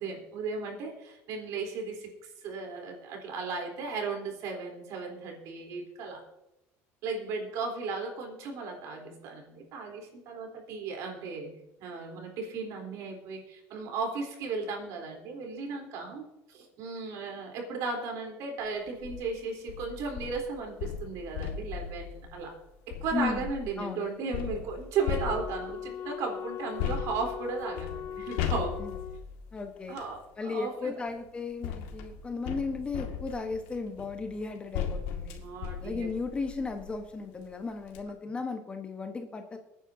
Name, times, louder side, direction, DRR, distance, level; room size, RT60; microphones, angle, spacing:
voice 1, 0.0-6.2 7.0-22.5 22.9-28.8 29.9-30.9 35.4-36.1, right 4 dB, 60° right, 2 dB, 3.7 m, -36 dB
sound 1, 18.9-19.2 19.7-23.7 24.3-25.9 26.8-30.2 31.1-37.0 37.5-37.6 37.8-38.0, left 8 dB, 85° left, 2.0 m, -37 dB
voice 2, 23.1-23.5 23.8-24.1 28.8-28.9 29.5-30.0 30.4-35.4 35.8-39.6, left 4 dB, 15° left, 5 dB, 1.2 m, -35 dB
Wind instrument woodwind instrument, 25.0-29.3, left 9 dB, 45° left, 0.5 m, -40 dB
23.5 x 9.6 x 2.8 m, 0.92 s
cardioid pair, 150°, 6 cm